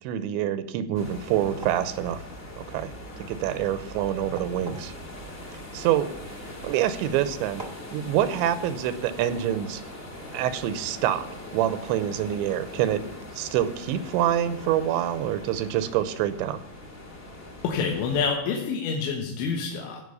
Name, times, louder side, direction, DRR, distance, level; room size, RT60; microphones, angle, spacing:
voice 1, 0.0-2.2 2.6-2.9 3.2-4.9 5.7-6.1 6.6-7.6 7.9-9.8 10.3-11.3 11.5-13.0 13.3-16.6, right 11 dB, 90° right, 13 dB, 3.1 m, -26 dB
sound 1, 0.9-18.3, left 1 dB, 45° left, 0.7 m, -41 dB
sound 2, 1.4-7.1 7.6-7.9, right 2 dB, 65° right, 0.5 m, -45 dB
voice 2, 17.6-20.0, left 5 dB, 80° left, 1 dB, 3.6 m, -27 dB
16.0 x 5.5 x 8.2 m, 0.89 s
omnidirectional pair, 5.3 m